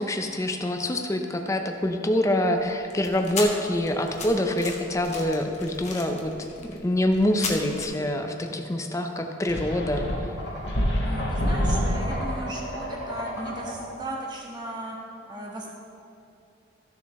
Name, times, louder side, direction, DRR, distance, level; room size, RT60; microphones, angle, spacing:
voice 1, 0.0-6.3 6.6-10.1, left 1 dB, 15° left, 4 dB, 0.5 m, -25 dB
sound 1, 2.6-7.8, left 4 dB, 35° left, 1.1 m, -37 dB
sound 2, 9.5-14.0, equal, 55° left, 1.5 m, -28 dB
voice 2, 11.0-15.0 15.3-15.7, right 1 dB, 20° right, -3 dB, 1.4 m, -36 dB
14.5 x 7.1 x 3.2 m, 2.6 s
head